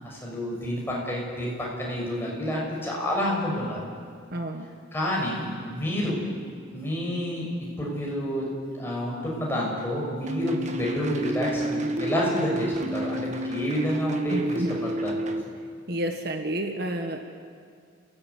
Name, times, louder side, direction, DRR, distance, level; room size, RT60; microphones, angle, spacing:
voice 1, 0.0-3.8 4.9-6.2 6.7-8.5 8.7-15.1, left 1 dB, 10° left, -4 dB, 6.4 m, -29 dB
voice 2, 4.3-4.7 14.3-14.7 15.9-17.2, right 1 dB, 50° right, 4 dB, 1.5 m, -30 dB
sound 1, 10.2-15.4, right 1 dB, 35° right, 1.3 m, -30 dB
30.0 x 17.5 x 8.5 m, 2.1 s
head